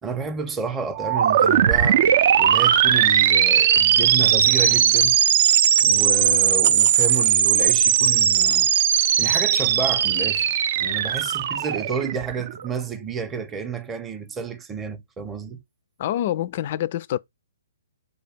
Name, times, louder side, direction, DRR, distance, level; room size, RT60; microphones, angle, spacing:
voice 1, 0.0-2.1 2.4-5.2 5.8-8.7 9.2-15.6, right 5 dB, 15° right, 0.6 m, -30 dB
sound 1, 0.9-12.6, right 9 dB, 50° right, 0.4 m, -19 dB
voice 2, 16.0-17.2, left 12 dB, 45° left, 0.3 m, -26 dB
5.1 x 2.3 x 4.3 m
figure-of-eight pair, 130°, 0 cm